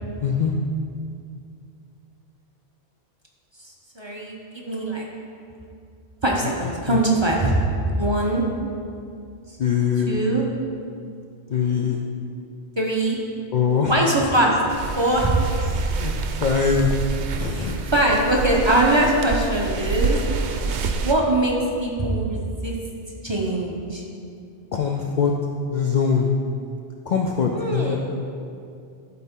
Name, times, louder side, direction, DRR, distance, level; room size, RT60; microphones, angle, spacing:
voice 1, 0.2-0.5 6.9-7.0 7.5-7.6 9.5-10.1 11.5-12.0 13.5-13.9 15.6-16.1 16.4-16.9 17.4-17.8 24.7-25.3 25.7-26.3 27.1-28.0, left 6 dB, 60° left, 1 dB, 0.5 m, -22 dB
voice 2, 4.0-5.0 6.2-7.5 8.0-8.4 10.1-10.4 12.8-13.2 13.9-14.6 15.0-15.7 17.5-20.2 21.0-21.5 21.8-22.7 23.2-24.0 27.5-28.0, right 1 dB, 30° right, -2 dB, 0.7 m, -22 dB
sound 1, 14.7-21.1, right 4 dB, 80° right, 0.9 m, -27 dB
12.0 x 4.2 x 3.6 m, 2.4 s
omnidirectional pair, 1.2 m